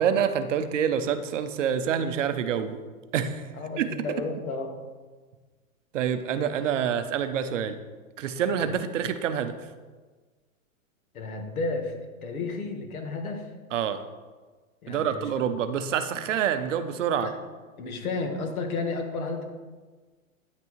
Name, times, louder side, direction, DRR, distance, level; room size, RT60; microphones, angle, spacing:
voice 1, 0.0-2.8 3.1-3.5 3.8-3.9 5.9-7.8 8.2-9.5 13.7-14.0 14.9-17.3, right 8 dB, 60° right, 10 dB, 0.7 m, -27 dB
voice 2, 3.6-4.8 8.5-8.6 11.1-11.9 12.2-13.5 14.8-15.5 17.2-17.4 17.8-19.4, left 3 dB, 80° left, 4 dB, 1.5 m, -32 dB
9.5 x 5.9 x 3.1 m, 1.4 s
supercardioid pair, 175°, 42 cm